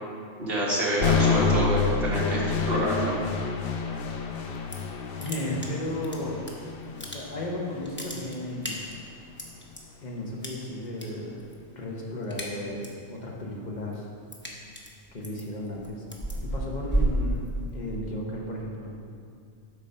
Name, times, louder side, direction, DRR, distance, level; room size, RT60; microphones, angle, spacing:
voice 1, 0.4-3.1, equal, 45° right, -6 dB, 1.7 m, -27 dB
sound 1, 1.0-9.0, left 4 dB, 60° left, 0.7 m, -29 dB
sound 2, 4.4-4.9 5.2-6.5 6.8-7.5 7.8-9.8 10.4-11.1 11.4-11.7 12.0-13.0 13.4-18.0, right 1 dB, 10° left, 0.6 m, -32 dB
voice 2, 5.2-6.4 7.1-8.9 10.0-11.4 11.7-12.8 13.1-14.1 15.1-16.0 16.4-17.4 17.7-18.9, left 1 dB, 35° left, -2 dB, 1.1 m, -34 dB
8.3 x 4.2 x 5.6 m, 2.3 s
omnidirectional pair, 1.4 m